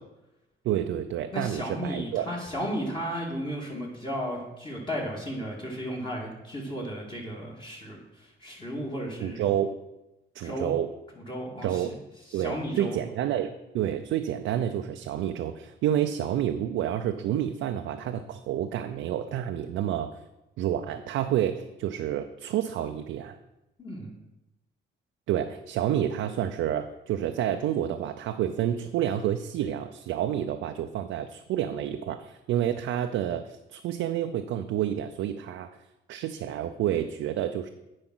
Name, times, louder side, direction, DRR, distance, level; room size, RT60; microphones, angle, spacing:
voice 1, 0.6-2.3 9.2-9.8 10.3-10.9 11.6-11.9 12.3-20.1 20.6-23.4 25.3-33.4 33.7-35.7 36.1-37.7, right 10 dB, 85° right, 6 dB, 0.5 m, -29 dB
voice 2, 1.3-9.4 10.4-10.7 11.3-11.9 12.3-13.0 23.8-24.1, equal, 25° left, -3 dB, 2.2 m, -34 dB
9.0 x 4.8 x 6.1 m, 0.97 s
cardioid pair, 90°, 20 cm